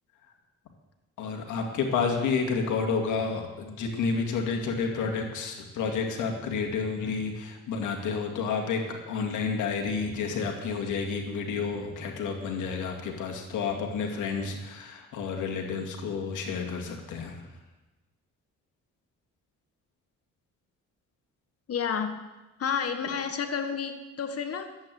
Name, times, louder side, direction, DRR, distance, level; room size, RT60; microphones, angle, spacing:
voice 1, 1.2-17.4, left 5 dB, 80° left, 1 dB, 2.3 m, -30 dB
voice 2, 21.7-22.3 22.6-24.7, left 6 dB, 50° left, 7 dB, 1.6 m, -30 dB
11.5 x 8.8 x 7.7 m, 1.1 s
cardioid pair, 90°, 30 cm